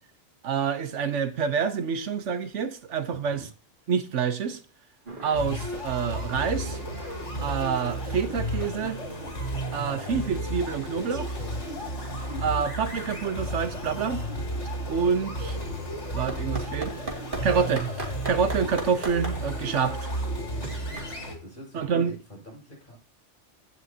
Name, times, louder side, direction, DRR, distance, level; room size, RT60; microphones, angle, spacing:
voice 1, 0.4-3.5 3.9-4.6 5.2-6.8 7.4-9.0 9.7-11.4 12.4-14.2 14.9-15.6 16.1-16.9 17.4-17.9 18.2-20.1 21.7-22.2, right 6 dB, 80° right, 1.2 m, -27 dB
voice 2, 3.1-3.5 9.6-10.0 20.6-21.0 21.4-23.0, right 1 dB, 45° left, 6.0 m, -46 dB
sound 1, 5.0-5.4 5.7-5.9 6.2-9.8 10.2-17.4 17.8-21.4, right 2 dB, 45° right, 2.8 m, -40 dB
sound 2, 5.3-21.3, right 1 dB, 75° left, 3.1 m, -33 dB
16.0 x 5.7 x 2.8 m
omnidirectional pair, 1.2 m